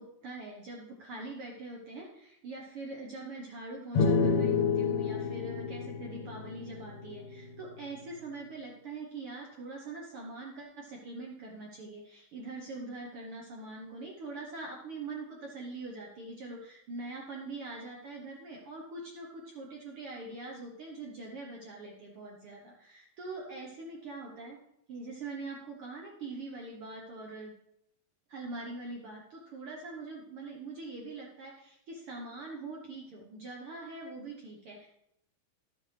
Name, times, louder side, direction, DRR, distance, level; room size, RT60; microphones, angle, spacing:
voice 1, 0.0-24.6 24.9-27.5 28.3-34.9, right 2 dB, 70° right, -1 dB, 1.3 m, -43 dB
sound 1, 4.0-7.5, left 5 dB, 70° left, 1.9 m, -29 dB
12.5 x 7.4 x 3.2 m, 0.77 s
omnidirectional pair, 3.9 m